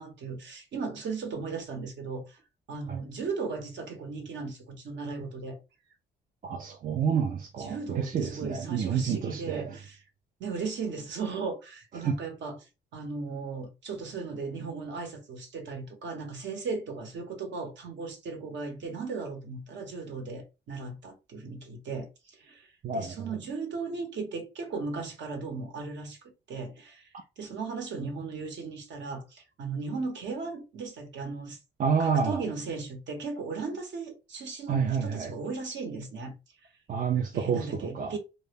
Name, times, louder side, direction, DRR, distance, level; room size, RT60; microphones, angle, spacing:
voice 1, 0.0-2.4 2.7-5.6 7.6-10.0 10.4-12.6 12.9-22.7 22.9-27.1 27.4-31.6 32.0-36.3 37.3-38.2, right 4 dB, 65° right, 0.9 m, -37 dB
voice 2, 6.4-9.8 11.9-12.2 22.8-23.4 31.8-32.4 34.7-35.3 36.9-38.2, right 6 dB, 45° right, 0.4 m, -29 dB
2.1 x 2.0 x 3.3 m
cardioid pair, 90°, 20 cm